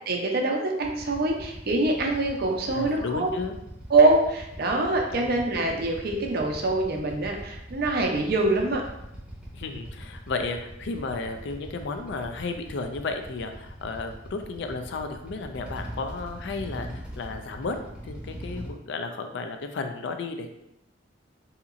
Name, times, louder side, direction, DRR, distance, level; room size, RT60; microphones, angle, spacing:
voice 1, 0.1-3.3 3.9-8.8, right 2 dB, 55° right, 1 dB, 0.6 m, -24 dB
Motorcycle / Idling, 0.8-18.7, equal, 5° right, 0.7 m, -42 dB
voice 2, 2.7-3.6 5.1-5.4 9.5-17.8 18.0-20.5, left 3 dB, 65° left, 6 dB, 0.4 m, -33 dB
3.8 x 2.8 x 2.4 m, 0.82 s
head